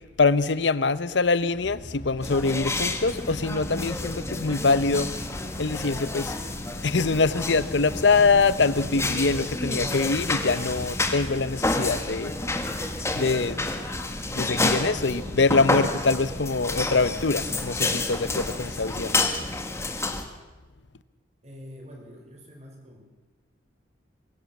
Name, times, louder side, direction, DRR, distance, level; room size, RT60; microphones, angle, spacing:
voice 1, 0.2-5.1 5.6-6.3 6.8-12.3 13.1-13.6 14.3-19.2, left 4 dB, 70° left, 0.8 m, -24 dB
sound 1, 1.6-19.6, equal, 45° left, 1.9 m, -40 dB
sound 2, 2.2-20.2, left 2 dB, 15° left, 1.6 m, -30 dB
voice 2, 21.4-23.0, equal, 35° right, 5.4 m, -45 dB
24.0 x 16.0 x 7.2 m
head